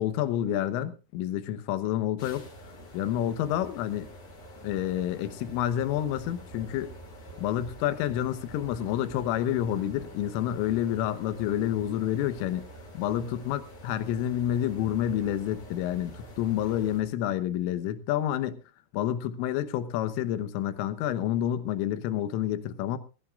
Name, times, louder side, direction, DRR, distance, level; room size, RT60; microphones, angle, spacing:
voice 1, 0.0-2.5 2.9-4.1 4.6-6.9 7.4-12.7 13.0-18.6 18.9-23.0, left 11 dB, 85° left, 3.6 m, -29 dB
sound 1, 2.2-17.0, right 1 dB, 40° left, 5.4 m, -47 dB
21.0 x 15.5 x 2.4 m
omnidirectional pair, 5.7 m